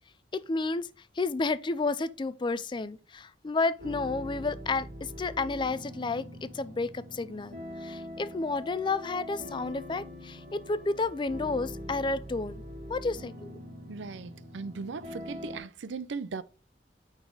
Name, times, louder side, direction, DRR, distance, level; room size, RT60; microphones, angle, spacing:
voice 1, 0.3-0.9 1.2-12.6 12.9-13.6, left 3 dB, 25° left, 0.4 m, -31 dB
sound 1, 3.8-15.6, left 1 dB, 45° right, 3.1 m, -43 dB
voice 2, 13.9-16.4, right 4 dB, 85° right, 0.5 m, -38 dB
9.3 x 4.1 x 3.8 m
head